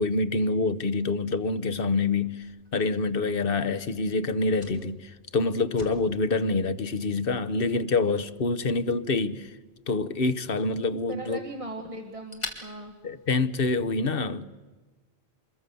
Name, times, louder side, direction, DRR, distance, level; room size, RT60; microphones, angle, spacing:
voice 1, 0.0-2.5 2.7-9.5 9.9-11.4 13.0-14.5, left 3 dB, 60° left, 1.2 m, -26 dB
Fire, 2.4-13.9, left 1 dB, 25° left, 2.9 m, -48 dB
voice 2, 11.1-12.9, right 2 dB, 30° right, 1.7 m, -38 dB
26.5 x 22.0 x 6.9 m
omnidirectional pair, 1.1 m